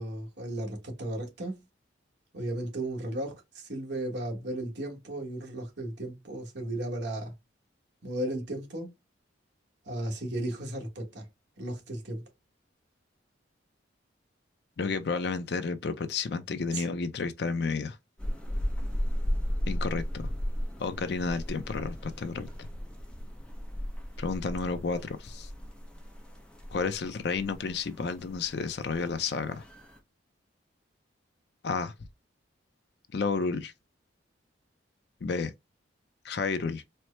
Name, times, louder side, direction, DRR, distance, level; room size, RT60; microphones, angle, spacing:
voice 1, 0.0-1.6 2.3-7.3 8.0-8.9 9.8-11.3 11.6-12.2 16.7-16.8, right 1 dB, 60° right, 1.2 m, -35 dB
voice 2, 14.8-18.0 19.7-20.3 20.8-22.7 24.2-25.5 26.7-29.7 31.6-31.9 33.1-33.7 35.2-35.5 36.2-36.8, left 4 dB, 55° left, 0.5 m, -31 dB
sound 1, 18.2-30.0, equal, 5° left, 0.6 m, -36 dB
4.3 x 2.0 x 3.2 m
head